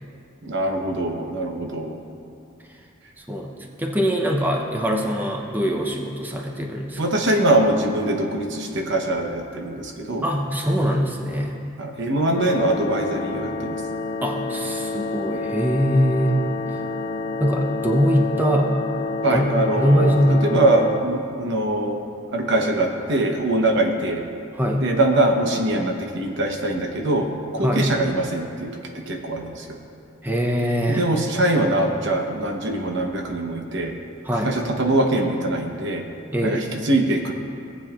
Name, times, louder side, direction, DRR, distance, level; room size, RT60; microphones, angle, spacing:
voice 1, 0.4-2.0 7.0-10.2 11.8-13.7 19.2-22.0 22.3-24.2 24.8-28.8 29.1-29.6 30.9-33.9 34.4-36.0 36.4-36.6 36.9-37.3, right 1 dB, 65° right, 3 dB, 0.9 m, -22 dB
voice 2, 3.2-7.1 10.2-11.6 14.2-16.4 17.4-18.7 19.3-19.5 19.7-20.7 24.5-24.9 27.6-27.9 30.2-31.1 34.2-34.6 36.3-36.6, equal, 10° right, 0 dB, 0.7 m, -22 dB
sound 1, 12.3-21.0, left 3 dB, 50° left, 0.6 m, -28 dB
18.0 x 8.4 x 2.4 m, 2.4 s
head